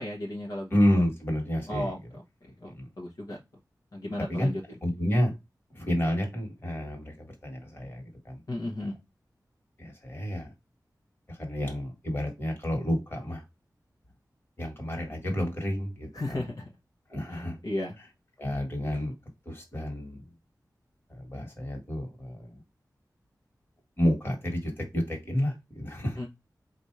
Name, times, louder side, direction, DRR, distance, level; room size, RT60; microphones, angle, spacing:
voice 1, 0.0-0.7 1.7-2.0 2.6-3.4 3.9-4.6 8.5-9.0 16.1-16.6 17.3-18.0 26.2-26.3, left 1 dB, 60° left, 1.0 m, -34 dB
voice 2, 0.7-1.9 2.7-2.9 4.3-4.6 4.8-5.3 5.7-8.4 8.8-8.9 9.8-10.5 11.3-13.4 14.6-16.4 17.1-17.6 18.4-19.1 19.5-20.2 21.1-22.6 24.0-26.2, equal, 30° left, 1.6 m, -30 dB
4.0 x 2.6 x 4.6 m
wide cardioid pair, 90°, 7 cm